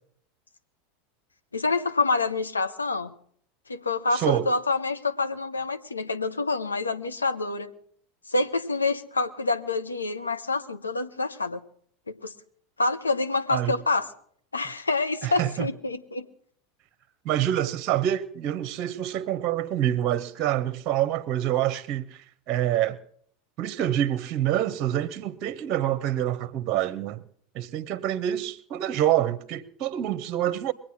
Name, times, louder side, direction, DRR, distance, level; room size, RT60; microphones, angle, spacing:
voice 1, 1.5-3.1 3.7-7.7 8.3-11.6 12.1-12.3 12.8-14.1 14.5-16.3, left 3 dB, 85° left, 0.8 m, -27 dB
voice 2, 4.1-4.5 13.5-13.7 15.2-15.7 17.2-23.0 23.6-27.2 27.5-30.7, right 12 dB, 45° right, 0.7 m, -26 dB
22.0 x 8.9 x 6.2 m
figure-of-eight pair, 80°, 0 cm